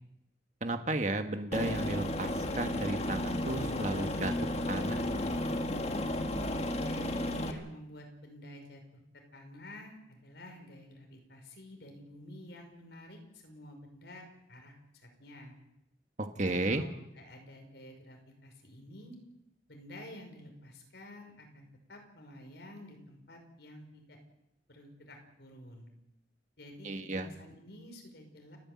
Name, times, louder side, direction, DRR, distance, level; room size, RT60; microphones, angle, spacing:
voice 1, 0.6-4.3 4.7-5.0 16.2-16.8 26.8-27.3, right 2 dB, 40° right, 6 dB, 1.7 m, -33 dB
Aircraft, 1.5-7.5, left 1 dB, 35° left, 1.7 m, -33 dB
voice 2, 6.9-8.8 9.3-14.7 15.0-15.5 16.4-16.9 17.2-19.2 19.7-24.2 24.7-25.9 26.6-28.6, left 1 dB, 65° left, 3 dB, 5.7 m, -50 dB
30.0 x 10.0 x 8.8 m, 0.85 s
head